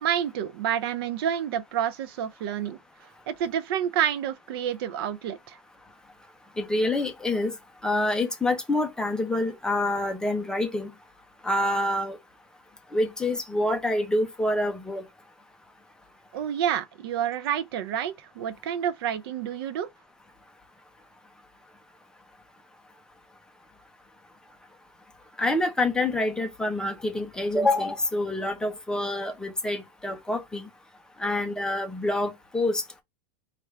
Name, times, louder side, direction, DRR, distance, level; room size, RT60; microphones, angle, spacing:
voice 1, 0.0-2.8 3.3-5.6 16.3-19.9, right 9 dB, 55° right, 0.4 m, -29 dB
voice 2, 6.6-7.5 7.8-10.9 11.4-12.2 12.9-15.0 25.4-30.7 31.2-33.0, left 1 dB, 5° left, 0.6 m, -27 dB
3.2 x 2.4 x 4.4 m
supercardioid pair, 160°, 15 cm